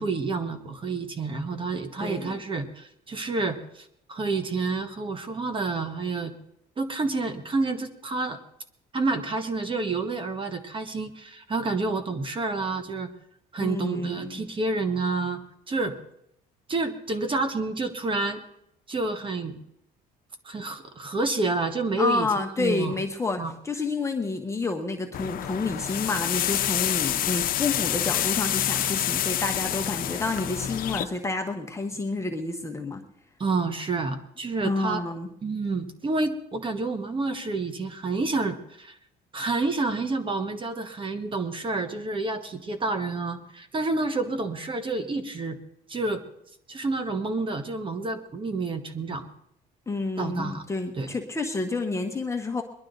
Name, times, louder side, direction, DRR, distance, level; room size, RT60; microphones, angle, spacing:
voice 1, 0.0-6.3 6.8-8.4 8.9-13.1 13.5-15.4 15.7-15.9 16.7-18.4 18.9-19.6 20.4-22.9 23.4-23.5 33.4-35.0 35.4-39.0 39.3-45.6 45.9-46.2 46.7-49.2 50.2-50.6 51.0-51.1, right 3 dB, 30° right, 9 dB, 1.4 m, -29 dB
voice 2, 2.0-2.4 13.6-14.4 22.0-33.0 34.6-35.3 49.9-52.6, left 3 dB, 15° left, 3 dB, 1.2 m, -29 dB
sound 1, 25.1-31.0, left 11 dB, 55° left, 0.8 m, -27 dB
21.5 x 11.5 x 4.0 m, 0.75 s
cardioid pair, 110°, 17 cm